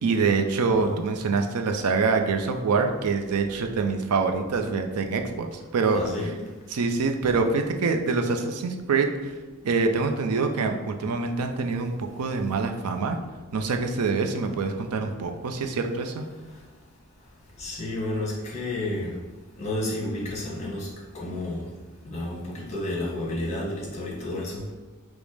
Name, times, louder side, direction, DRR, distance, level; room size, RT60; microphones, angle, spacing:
voice 1, 0.0-6.1 6.7-9.3 9.6-13.2 13.5-16.2, right 4 dB, 80° right, 5 dB, 0.5 m, -25 dB
voice 2, 5.9-6.4 17.6-19.1 19.5-21.7 22.0-24.6, left 1 dB, 30° left, -3 dB, 1.2 m, -31 dB
5.1 x 2.0 x 4.8 m, 1.3 s
head